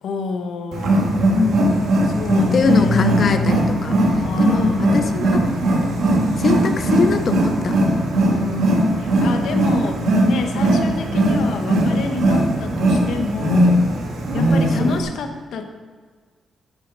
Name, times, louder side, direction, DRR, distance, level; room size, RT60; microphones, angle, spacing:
voice 1, 0.0-1.1 2.0-3.1 4.2-4.8 8.3-10.0 10.3-13.8 14.3-15.6, left 3 dB, 80° left, 5 dB, 1.2 m, -27 dB
Wild animals, 0.7-15.0, right 1 dB, 75° right, 2.3 m, -19 dB
voice 2, 1.3-1.9 2.5-5.4 6.4-7.8 9.5-9.6 14.8-15.0, left 5 dB, 45° left, 8 dB, 0.7 m, -22 dB
9.3 x 8.9 x 5.2 m, 1.5 s
cardioid pair, 140°, 0 cm